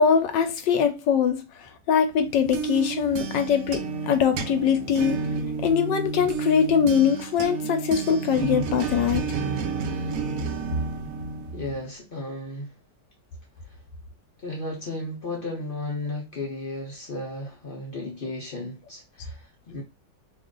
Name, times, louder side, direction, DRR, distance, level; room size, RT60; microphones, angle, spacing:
voice 1, 0.0-5.2 5.6-9.2, left 7 dB, 80° left, 1.2 m, -22 dB
sound 1, 2.2-11.9, right 5 dB, 75° right, 0.8 m, -31 dB
voice 2, 11.5-12.7 13.6-13.8 14.4-19.8, left 2 dB, 60° left, 0.5 m, -34 dB
3.1 x 2.4 x 3.7 m
omnidirectional pair, 2.0 m